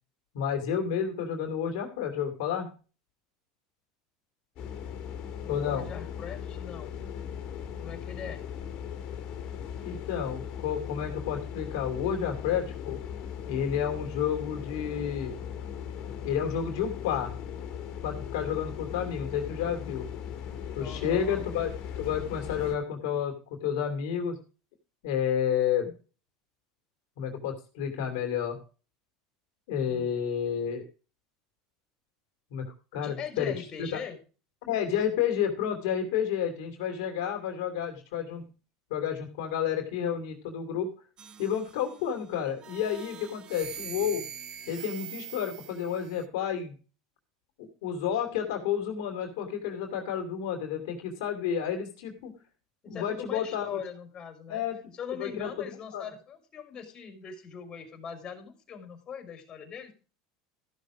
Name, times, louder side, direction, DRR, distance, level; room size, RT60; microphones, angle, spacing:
voice 1, 0.3-2.7 5.5-5.9 9.8-13.0 13.5-15.3 16.2-17.3 18.0-20.0 20.8-21.7 22.0-24.4 25.0-26.0 27.2-28.6 29.7-30.8 32.5-32.6 32.9-34.0 34.6-38.5 38.9-40.9 41.4-44.2 44.7-46.8 47.6-52.3 52.9-53.8 54.5-54.8 55.1-56.0, left 8 dB, 75° left, 4 dB, 2.9 m, -30 dB
sound 1, 4.6-22.7, left 8 dB, 55° left, 3.2 m, -38 dB
voice 2, 5.5-6.9 7.8-8.4 20.8-21.5 29.8-30.1 32.9-34.2 52.8-54.6 54.9-59.9, left 7 dB, 35° left, 7 dB, 4.1 m, -41 dB
sound 2, 41.2-42.1 42.6-46.2, right 9 dB, 35° right, 1.0 m, -43 dB
14.5 x 6.5 x 5.0 m, 0.36 s
supercardioid pair, 110°, 2 cm